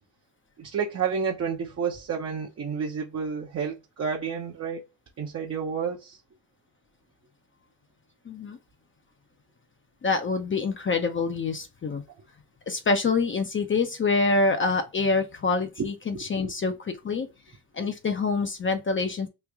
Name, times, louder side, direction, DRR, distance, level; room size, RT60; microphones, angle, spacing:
voice 1, 0.6-4.8 5.2-6.2 15.8-15.9 16.1-16.5, right 6 dB, 40° right, 0.7 m, -30 dB
voice 2, 8.3-8.6 10.0-12.0 12.7-17.3 17.7-19.3, left 4 dB, 30° left, 0.6 m, -26 dB
3.1 x 2.5 x 3.5 m
cardioid pair, 90°, 39 cm